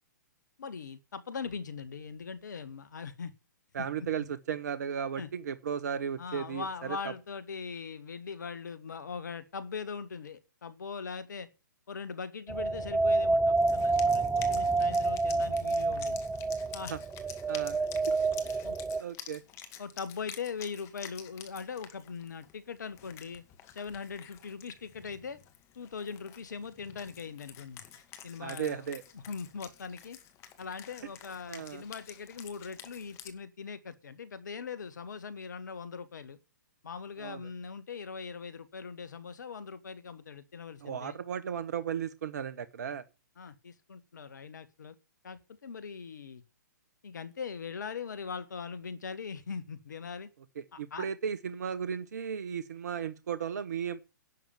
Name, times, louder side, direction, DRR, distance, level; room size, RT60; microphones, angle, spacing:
voice 1, 0.6-3.3 3.8-4.1 5.2-5.3 6.2-11.5 11.9-16.2 16.7-17.0 18.6-18.8 19.8-23.4 23.7-25.4 25.8-27.8 28.2-28.9 29.1-30.2 30.6-36.4 36.8-41.2 43.4-45.0 45.2-46.4 47.0-50.3 50.7-51.1, left 5 dB, 70° left, 1.8 m, -41 dB
voice 2, 3.7-7.0 16.9-17.0 17.5-17.8 18.5-18.6 19.0-19.4 28.4-29.0 31.5-31.8 37.2-37.4 40.8-43.0 50.8-54.0, right 7 dB, 60° right, 1.1 m, -35 dB
sound 1, 12.5-19.0, right 3 dB, 5° right, 0.7 m, -28 dB
Wind instrument woodwind instrument, 13.6-33.3, left 10 dB, 25° left, 2.2 m, -50 dB
11.5 x 7.3 x 8.8 m
figure-of-eight pair, 125°, 10 cm